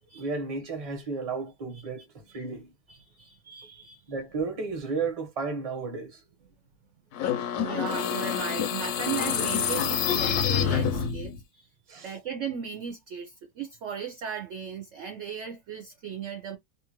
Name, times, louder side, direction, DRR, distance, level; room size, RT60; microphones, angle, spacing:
voice 1, 0.1-2.7 4.1-6.2 11.9-12.1, right 4 dB, 30° right, 0.8 m, -33 dB
voice 2, 2.9-4.0 7.6-11.7 12.0-16.6, right 7 dB, 65° right, 0.8 m, -37 dB
sound 1, 7.1-11.4, left 8 dB, 80° left, 1.1 m, -27 dB
2.8 x 2.4 x 2.9 m
omnidirectional pair, 1.7 m